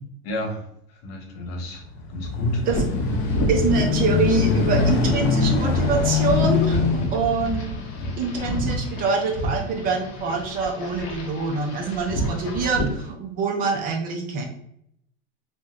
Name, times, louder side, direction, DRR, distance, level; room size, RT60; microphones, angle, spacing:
voice 1, 0.2-1.8 2.1-2.6 7.9-8.2, left 1 dB, 65° left, 2 dB, 1.1 m, -31 dB
sound 1, 1.6-10.4 11.1-11.2, left 5 dB, 85° left, 0.8 m, -25 dB
sound 2, 2.7-13.1, right 1 dB, 40° left, 0.8 m, -29 dB
voice 2, 3.5-6.8 7.1-7.7 8.2-14.4, right 4 dB, 30° right, 1 dB, 0.4 m, -25 dB
2.6 x 2.2 x 3.4 m, 0.73 s
supercardioid pair, 150°, 32 cm